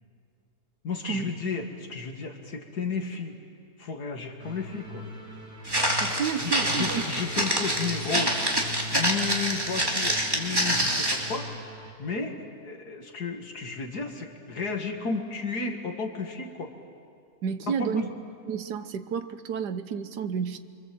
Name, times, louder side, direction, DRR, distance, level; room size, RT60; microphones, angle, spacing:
voice 1, 0.8-3.4 3.8-5.0 6.4-8.4 8.9-11.5 12.0-16.7 17.7-18.1, left 4 dB, 70° left, 4 dB, 2.4 m, -33 dB
sound 1, 4.4-11.9, left 1 dB, 60° right, 4.1 m, -41 dB
Walk footsteps, 5.7-11.3, right 1 dB, 15° right, 3.0 m, -26 dB
voice 2, 6.0-7.0 17.4-18.0 18.5-20.6, right 7 dB, 85° right, 10 dB, 1.6 m, -30 dB
26.0 x 26.0 x 7.8 m, 2.3 s
omnidirectional pair, 1.8 m